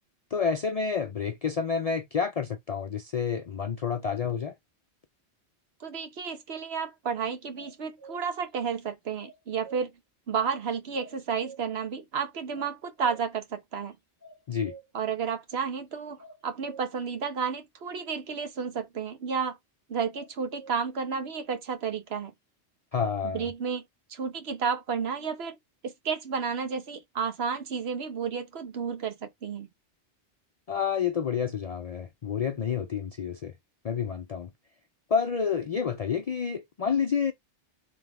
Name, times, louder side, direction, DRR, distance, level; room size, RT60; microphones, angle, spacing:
voice 1, 0.3-4.5 14.5-14.7 22.9-23.5 30.7-33.5 33.8-34.5 35.1-37.3, left 6 dB, 55° left, 0.4 m, -29 dB
voice 2, 5.8-9.9 10.3-14.0 14.9-19.6 19.9-22.3 23.3-23.8 24.1-25.5 25.8-29.7, right 6 dB, 65° right, 1.1 m, -32 dB
sound 1, 7.6-8.3 9.2-9.8 11.0-11.7 12.5-13.3 14.2-14.9 16.2-16.8 20.1-20.8, right 4 dB, 15° left, 0.9 m, -48 dB
3.4 x 3.3 x 3.5 m
omnidirectional pair, 1.2 m